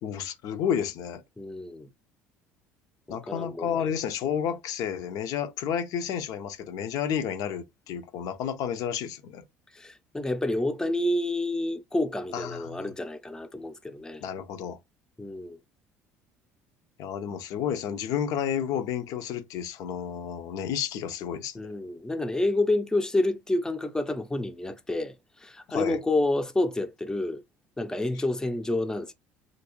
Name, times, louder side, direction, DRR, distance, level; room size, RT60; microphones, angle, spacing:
voice 1, 0.0-1.2 3.1-9.4 12.3-12.8 14.2-14.8 17.0-21.6 25.7-26.0, left 8 dB, 65° left, 0.6 m, -31 dB
voice 2, 1.4-1.9 3.1-3.7 9.7-14.2 15.2-15.6 21.6-27.4 27.8-29.1, left 2 dB, 10° left, 0.5 m, -29 dB
3.0 x 2.6 x 3.0 m
hypercardioid pair, 65°, 7 cm